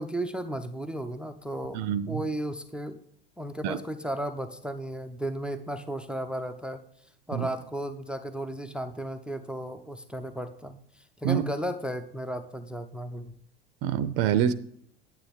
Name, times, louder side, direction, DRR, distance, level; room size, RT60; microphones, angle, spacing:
voice 1, 0.0-3.0 3.4-6.8 7.3-13.4, right 1 dB, 5° right, 10 dB, 0.5 m, -34 dB
voice 2, 1.7-2.2 3.6-3.8 7.3-7.5 11.2-11.4 13.8-14.5, right 9 dB, 45° right, 15 dB, 0.6 m, -26 dB
9.0 x 8.9 x 3.5 m, 0.67 s
figure-of-eight pair, 70°, 32 cm